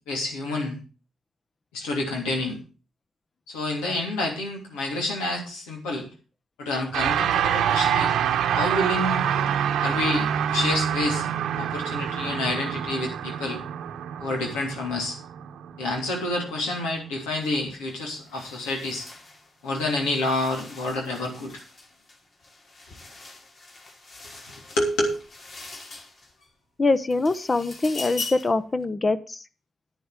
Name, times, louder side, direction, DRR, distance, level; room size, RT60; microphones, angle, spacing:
voice 1, 0.1-0.8 1.7-2.6 3.5-6.1 6.6-8.1 8.5-9.2 9.8-11.3 11.6-13.6 14.2-15.2 15.8-19.1 19.6-21.6 24.8-25.2, left 2 dB, 90° left, 1 dB, 2.9 m, -28 dB
sound 1, 6.9-16.4, right 9 dB, 80° right, 0.9 m, -26 dB
sound 2, 17.4-17.6 17.9-26.5 26.9-28.6, left 3 dB, 55° left, 3.0 m, -42 dB
voice 2, 26.8-29.4, left 3 dB, 35° left, 13 dB, 0.9 m, -24 dB
10.0 x 9.1 x 5.0 m, 0.35 s
supercardioid pair, 50°, 0 cm